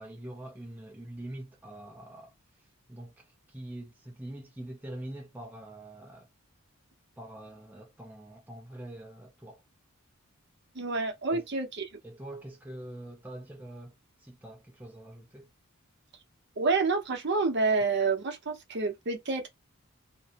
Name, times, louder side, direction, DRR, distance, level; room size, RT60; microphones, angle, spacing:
voice 1, 0.0-2.3 2.9-6.3 7.2-9.6 11.3-11.5 12.0-13.9 14.2-15.5, right 1 dB, 10° right, 0.5 m, -44 dB
voice 2, 10.7-11.8 16.6-19.5, right 4 dB, 50° right, 0.7 m, -28 dB
2.6 x 2.0 x 2.8 m
head